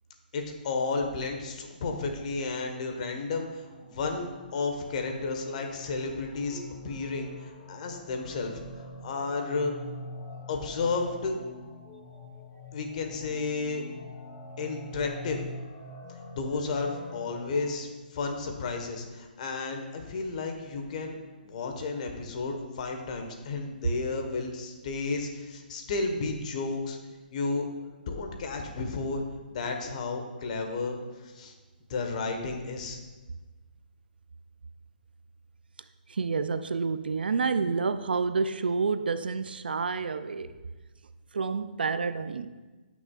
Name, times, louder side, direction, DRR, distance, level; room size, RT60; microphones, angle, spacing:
voice 1, 0.3-6.6 6.8-7.3 7.7-8.6 9.0-9.7 10.5-11.4 12.7-13.8 14.6-15.4 16.4-21.2 21.4-27.0 27.3-27.7 28.1-29.2 29.5-31.0 31.3-31.5 31.9-33.0, left 3 dB, 50° left, 4 dB, 1.3 m, -32 dB
sound 1, 3.0-17.8, left 1 dB, 20° left, 1.1 m, -45 dB
voice 2, 36.1-40.5 41.3-42.6, right 4 dB, 85° right, 12 dB, 0.4 m, -29 dB
16.0 x 6.1 x 2.4 m, 1.2 s
hypercardioid pair, 145°, 5 cm